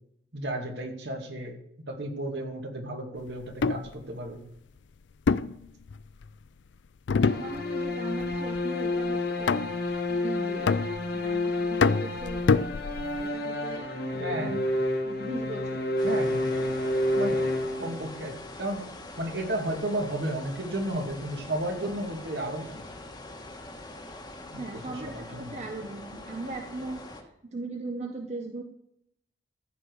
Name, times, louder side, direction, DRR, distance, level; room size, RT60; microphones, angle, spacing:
voice 1, 0.3-1.6 1.9-4.4 14.2-14.6 16.0-16.5 17.1-17.4 17.8-18.9 19.2-22.8 24.5-25.6, right 1 dB, 65° right, 2 dB, 2.4 m, -33 dB
sound 1, 3.4-3.9 5.3-6.3 7.1-7.9 8.2-8.6 9.5-10.0 10.7-11.3 11.8-13.3, left 4 dB, 85° left, 0.4 m, -26 dB
sound 2, 7.2-18.3, left 1 dB, 55° left, 1.6 m, -30 dB
voice 2, 7.3-9.6 10.1-10.7 11.1-12.4 13.2-14.6 15.0-15.9 24.6-27.0 27.5-28.6, right 2 dB, 40° right, 3 dB, 1.0 m, -38 dB
sound 3, 16.0-27.2, left 2 dB, 25° left, 1.5 m, -43 dB
14.5 x 5.1 x 8.0 m, 0.77 s
head